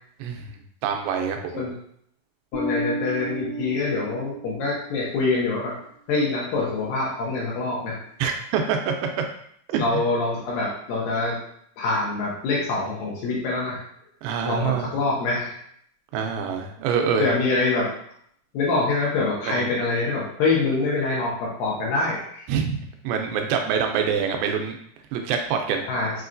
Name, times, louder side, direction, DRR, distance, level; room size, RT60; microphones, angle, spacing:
voice 1, 0.2-0.5 0.8-1.6 8.2-9.3 9.7-10.0 14.2-14.9 16.1-17.3 19.4-19.7 22.5-22.8 23.0-24.8 25.1-25.9, right 6 dB, 85° right, 4 dB, 2.5 m, -25 dB
voice 2, 2.5-5.7 6.1-8.0 9.8-11.4 11.8-13.8 14.5-15.6 17.2-17.9 18.5-22.5 25.9-26.1, left 3 dB, 75° left, -4 dB, 2.7 m, -25 dB
Bass guitar, 2.5-5.2, right 1 dB, 45° left, 1.3 m, -32 dB
6.3 x 3.0 x 2.5 m, 0.67 s
omnidirectional pair, 4.2 m